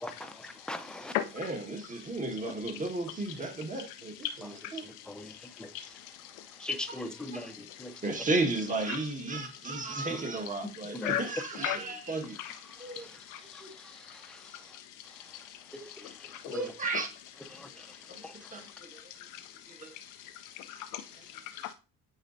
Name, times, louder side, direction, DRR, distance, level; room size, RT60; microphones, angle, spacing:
voice 1, 0.0-1.1 5.1-5.3 6.6-7.5 7.8-7.9 11.0-11.1 16.5-16.7, left 2 dB, 5° left, 0.7 m, -38 dB
voice 2, 1.3-4.8 6.9-7.5 8.0-12.4 12.8-13.1 13.6-13.7 15.8-15.9 16.5-17.1 18.1-19.0 19.7-19.9 21.1-21.3, right 2 dB, 25° right, 1.5 m, -34 dB
voice 3, 5.6-5.9 6.9-7.0 11.0-11.2 11.6-11.8 12.4-12.5 13.3-13.4 16.0-16.5 18.1-18.6 19.3-19.4 20.6-21.0 21.3-21.7, left 12 dB, 90° left, 0.5 m, -35 dB
8.8 x 4.1 x 2.6 m
cardioid pair, 110°, 30 cm